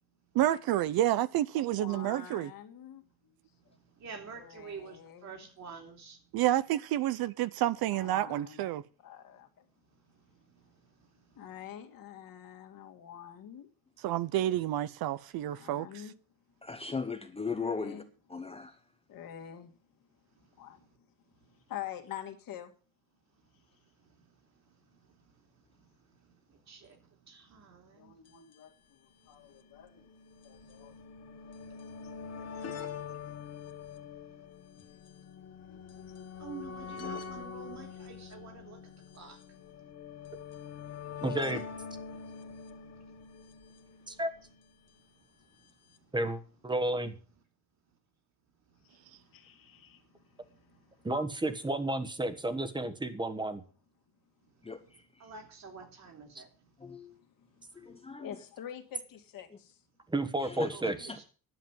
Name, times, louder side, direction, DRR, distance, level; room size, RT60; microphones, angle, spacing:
voice 1, 0.4-2.5 6.3-8.8 14.0-16.0, right 13 dB, 70° right, 0.7 m, -29 dB
voice 2, 1.6-3.4 4.4-5.4 7.9-8.7 9.0-9.7 11.4-13.7 15.5-16.1 17.5-18.1 19.1-19.7 20.6-20.8 21.7-22.7 27.9-30.0 30.4-31.0 32.0-33.2 35.6-36.2 49.3-50.0 50.5-50.6 50.9-51.0 57.4-57.7 58.2-59.8, left 10 dB, 65° left, 2.2 m, -47 dB
voice 3, 3.5-6.4 9.9-11.5 20.3-21.0 21.4-21.6 23.4-23.7 24.0-28.4 29.3-29.5 30.5-31.0 31.5-31.8 34.2-34.4 35.9-36.0 36.3-39.9 42.6-43.2 44.1-44.2 45.1-46.1 48.7-51.1 54.4-54.7 55.2-57.1 57.7-58.1 60.7-61.2, right 5 dB, 45° right, 3.0 m, -52 dB
voice 4, 16.6-18.0 18.3-18.8 54.6-55.0 56.8-57.1 57.7-58.3 60.4-61.2, left 4 dB, 15° left, 0.9 m, -38 dB
sound 1, 28.3-28.4 28.5-28.6 29.5-44.7 45.7-45.8 46.0-46.1, left 6 dB, 40° left, 1.5 m, -44 dB
voice 5, 41.2-41.6 44.1-44.3 46.1-47.1 51.0-53.6 60.1-61.1, right 1 dB, 10° right, 1.3 m, -32 dB
11.0 x 7.6 x 7.4 m
cardioid pair, 135°, 37 cm